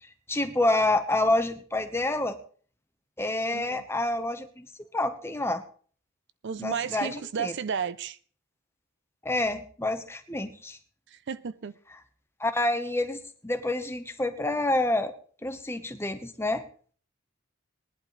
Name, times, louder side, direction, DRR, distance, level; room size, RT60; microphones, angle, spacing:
voice 1, 0.3-2.4 3.2-4.7 4.9-5.6 6.6-7.5 9.2-10.8 12.4-15.1 15.4-16.6, left 2 dB, 10° left, 1.1 m, -28 dB
voice 2, 3.5-3.8 6.4-8.2 11.1-11.7, right 6 dB, 55° right, 0.5 m, -33 dB
19.5 x 11.0 x 3.2 m
head